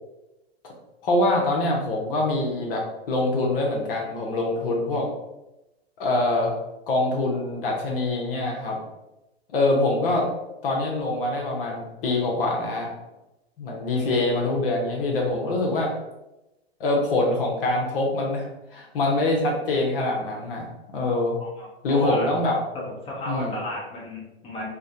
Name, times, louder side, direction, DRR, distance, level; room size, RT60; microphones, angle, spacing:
voice 1, 1.0-5.1 6.0-6.6 6.9-8.8 9.5-10.3 10.6-12.9 13.6-15.9 16.8-21.4 21.8-22.6 23.3-23.6, left 2 dB, 60° left, -1 dB, 0.8 m, -24 dB
voice 2, 21.1-22.3 23.0-24.7, left 1 dB, 20° left, -4 dB, 0.8 m, -33 dB
3.4 x 2.1 x 2.7 m, 0.96 s
hypercardioid pair, 110°, 32 cm